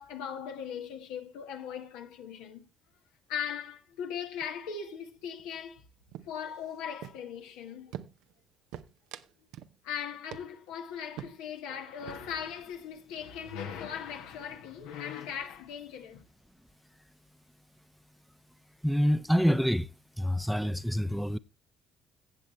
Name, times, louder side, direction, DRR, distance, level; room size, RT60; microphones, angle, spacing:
voice 1, 0.0-2.6 3.3-5.8 6.3-8.0 9.8-16.3, left 8 dB, 75° left, 1.3 m, -39 dB
sound 1, 3.8-4.1 4.4-4.8 5.0-5.8 6.1-7.5 7.9-8.4 8.7-9.8 10.0-10.1 10.3-10.7 11.2-11.6 11.9-12.4, right 12 dB, 70° right, 0.7 m, -45 dB
voice 2, 18.8-19.9 20.2-21.4, equal, ahead, 0.7 m, -26 dB
15.5 x 7.6 x 3.1 m
hypercardioid pair, 55°, 0 cm